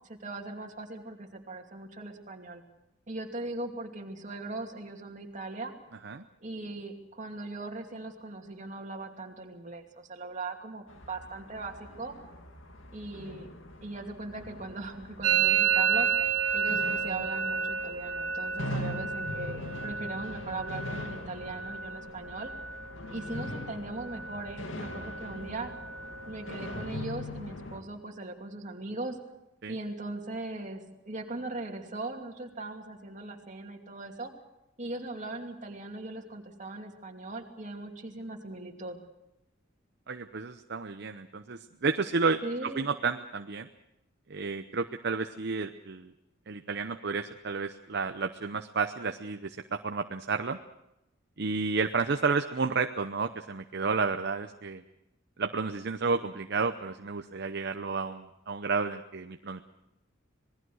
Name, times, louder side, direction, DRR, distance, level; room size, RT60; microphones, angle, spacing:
voice 1, 0.1-2.6 3.1-5.7 6.4-12.2 12.9-13.5 13.8-16.3 16.5-22.5 23.1-25.7 26.3-29.2 29.7-34.3 34.8-39.0 42.4-42.9, right 2 dB, 40° right, 2 dB, 2.7 m, -39 dB
sound 1, 10.9-27.8, left 1 dB, 80° left, 2.3 m, -42 dB
Musical instrument, 15.2-22.9 23.1-23.7 24.0-24.6 24.8-26.9, right 7 dB, 85° right, 1.3 m, -31 dB
voice 2, 40.1-43.7 44.3-46.1 46.5-50.6 51.4-54.8 55.4-59.6, right 4 dB, 60° right, 7 dB, 0.8 m, -31 dB
26.5 x 20.5 x 6.3 m, 0.88 s
head